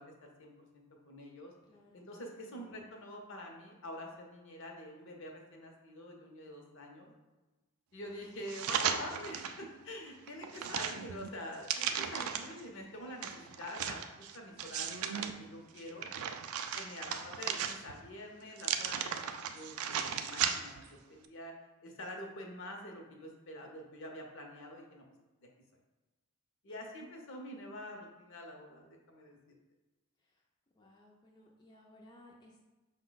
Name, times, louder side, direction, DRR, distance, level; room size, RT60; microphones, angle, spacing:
voice 1, 0.0-1.5 1.9-7.1 7.9-13.3 13.6-16.1 16.7-21.5 21.8-25.0 26.6-29.4, left 1 dB, 60° left, 1 dB, 0.7 m, -46 dB
voice 2, 1.7-2.9 15.9-16.3 30.8-32.6, left 1 dB, 20° left, -2 dB, 0.4 m, -60 dB
sound 1, 8.5-9.6 10.1-12.6 13.2-15.3 15.8-18.1 18.6-20.9 21.2-21.3, right 8 dB, 80° right, 0.3 m, -36 dB
5.4 x 2.1 x 3.9 m, 1.2 s
head